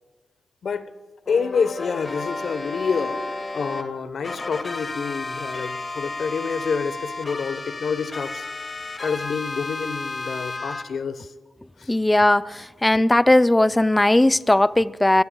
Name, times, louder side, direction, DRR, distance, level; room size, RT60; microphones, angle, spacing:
voice 1, 1.3-3.2 3.5-8.4 9.0-11.3 11.8-11.9, left 5 dB, 70° left, 1.1 m, -27 dB
sound 1, 1.3-3.8 4.2-10.8, left 2 dB, 45° left, 1.9 m, -32 dB
voice 2, 11.9-15.2, left 1 dB, 20° left, 0.5 m, -18 dB
26.0 x 19.0 x 2.4 m
supercardioid pair, 45°, 0 cm